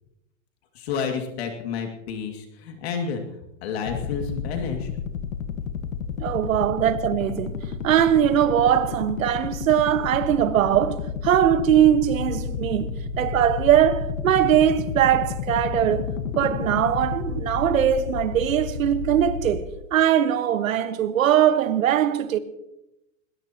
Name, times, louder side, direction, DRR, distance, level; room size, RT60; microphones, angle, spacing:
voice 1, 0.7-3.2 3.6-4.9, left 6 dB, 50° left, 2.4 m, -30 dB
sound 1, 3.9-19.6, left 6 dB, 75° left, 1.6 m, -31 dB
voice 2, 6.2-7.6 7.8-16.1 16.4-19.6 19.9-22.4, right 10 dB, 80° right, 1.5 m, -21 dB
21.0 x 19.5 x 3.0 m
supercardioid pair, 165°, 40 cm